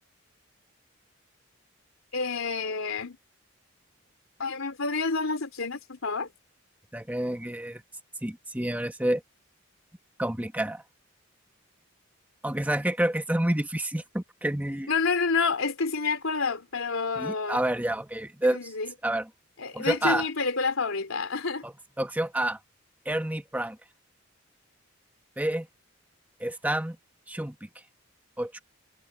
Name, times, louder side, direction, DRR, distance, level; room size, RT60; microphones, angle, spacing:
voice 1, 2.1-3.2 4.4-6.3 14.9-17.7 18.4-18.9 19.6-21.6, left 4 dB, 85° left, 3.2 m, -29 dB
voice 2, 6.9-7.8 8.2-9.2 10.2-10.8 12.4-14.9 17.2-18.6 19.0-19.3 19.7-20.2 21.6-21.7 22.0-22.6 23.0-23.8 25.4-25.7 26.4-27.0 27.3-27.5 28.4-28.6, right 1 dB, 10° right, 1.2 m, -28 dB
head